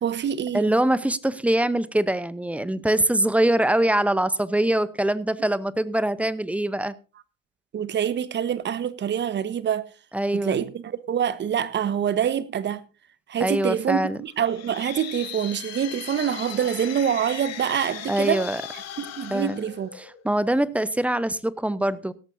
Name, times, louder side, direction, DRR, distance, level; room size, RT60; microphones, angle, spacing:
voice 1, 0.0-0.7 7.7-9.9 10.3-12.8 13.3-18.4 19.0-19.9, right 9 dB, 25° right, 1.2 m, -26 dB
voice 2, 0.5-6.9 10.1-10.6 13.4-14.2 18.1-18.6 19.3-19.7 20.0-22.1, right 1 dB, 5° right, 0.7 m, -23 dB
sound 1, 14.4-20.3, left 10 dB, 40° left, 2.9 m, -38 dB
17.0 x 13.5 x 2.6 m
hypercardioid pair, 100°, 40 cm